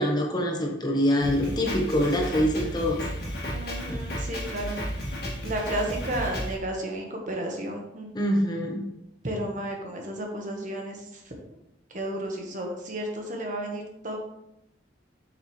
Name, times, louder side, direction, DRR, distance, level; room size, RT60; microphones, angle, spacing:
voice 1, 0.0-3.0 8.1-8.9, equal, 20° left, 1 dB, 1.0 m, -25 dB
Drum kit, 1.2-6.5, equal, 55° left, 2.0 m, -33 dB
voice 2, 3.5-4.8 5.4-8.1 9.2-11.3 11.9-14.2, right 1 dB, 45° right, 1 dB, 1.3 m, -32 dB
7.7 x 6.1 x 3.2 m, 0.81 s
head